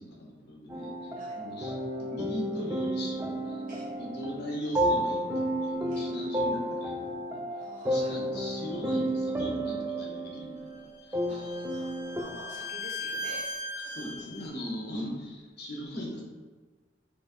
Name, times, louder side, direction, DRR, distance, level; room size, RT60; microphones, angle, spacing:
voice 1, 0.0-11.6 13.9-16.2, equal, 60° left, -1 dB, 0.9 m, -40 dB
sound 1, 0.7-12.2, right 1 dB, 15° right, 0.4 m, -32 dB
Guitar, 3.1-7.7, left 1 dB, 75° right, 0.7 m, -50 dB
voice 2, 7.6-8.1 11.3-13.6, right 1 dB, 50° right, -6 dB, 1.3 m, -48 dB
Bowed string instrument, 10.7-14.5, left 1 dB, 35° left, 0.5 m, -38 dB
4.4 x 3.0 x 3.0 m, 1.4 s
head